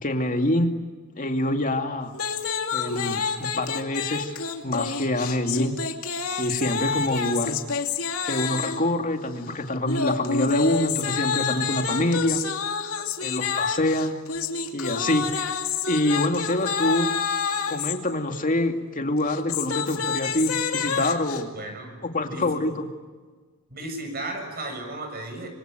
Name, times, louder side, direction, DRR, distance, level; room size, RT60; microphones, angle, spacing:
voice 1, 0.0-0.7 1.2-2.1 2.7-4.3 4.6-5.8 6.4-7.6 8.2-12.4 13.2-14.2 14.7-15.4 15.9-17.1 17.7-21.5 22.0-22.9, left 1 dB, 40° left, 4 dB, 2.5 m, -25 dB
sound 1, 2.1-8.9 9.9-18.0 19.2-21.4, left 6 dB, 75° left, 2.7 m, -28 dB
voice 2, 21.5-22.0 22.3-22.6 23.7-25.5, right 2 dB, 45° right, 5 dB, 7.1 m, -34 dB
27.5 x 23.5 x 9.2 m, 1.4 s
head